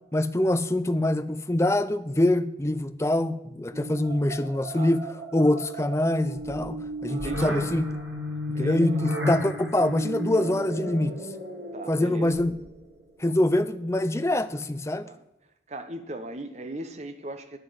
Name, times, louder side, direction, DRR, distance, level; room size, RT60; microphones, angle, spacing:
voice 1, 0.1-5.0 5.3-7.9 8.6-11.1 11.9-12.5 13.2-15.1, left 1 dB, 15° left, 0.5 m, -24 dB
sound 1, 3.7-12.8, equal, 85° right, 4.0 m, -34 dB
voice 2, 7.1-7.6 8.5-8.9 11.7-12.3 13.2-13.4 15.0-15.2 15.7-17.6, right 1 dB, 40° right, 1.3 m, -38 dB
9.4 x 9.2 x 7.9 m
head